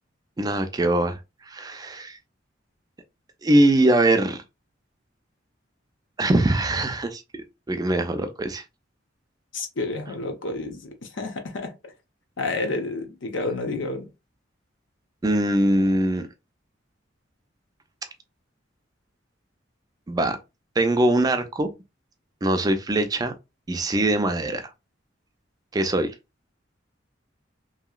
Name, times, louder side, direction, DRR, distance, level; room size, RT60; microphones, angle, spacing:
voice 1, 0.4-1.2 1.5-2.2 3.4-4.4 6.2-8.6 15.2-16.3 20.1-20.4 20.8-21.7 22.4-23.3 23.7-24.7 25.7-26.1, right 1 dB, 20° right, 0.4 m, -22 dB
voice 2, 9.5-11.7 12.4-14.1, left 2 dB, 70° left, 0.8 m, -30 dB
2.9 x 2.8 x 2.3 m
head